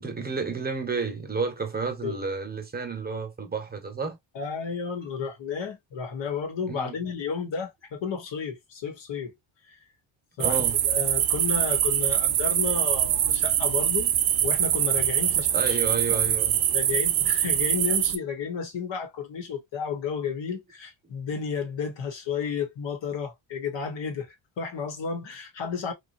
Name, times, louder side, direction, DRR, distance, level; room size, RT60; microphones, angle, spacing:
voice 1, 0.0-4.2 6.7-6.9 10.4-10.8 15.4-16.6, right 4 dB, 20° right, 0.9 m, -31 dB
voice 2, 4.3-9.3 9.7-9.8 10.4-14.1 14.4-15.8 16.1-16.2 16.7-25.9, left 6 dB, 65° left, 1.2 m, -32 dB
sound 1, 10.4-18.2, right 10 dB, 55° right, 0.5 m, -24 dB
2.9 x 2.5 x 2.5 m
cardioid pair, 90°, 47 cm